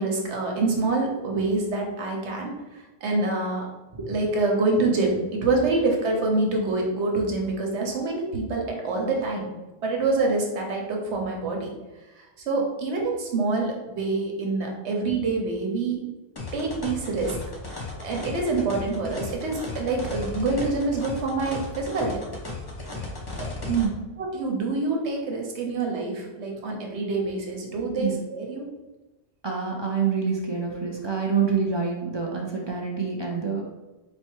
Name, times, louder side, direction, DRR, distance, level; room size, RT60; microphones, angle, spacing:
voice 1, 0.0-3.7 4.1-9.5 9.8-11.7 12.2-16.0 16.5-17.4 17.7-22.2 24.2-28.7, right 3 dB, 85° right, 1 dB, 1.1 m, -26 dB
sound 1, 16.4-23.9, left 2 dB, 25° left, 0.6 m, -35 dB
voice 2, 23.7-24.0 28.0-28.1 29.4-33.6, right 6 dB, 40° right, -1 dB, 0.4 m, -26 dB
4.3 x 2.2 x 4.4 m, 1.1 s
omnidirectional pair, 1.1 m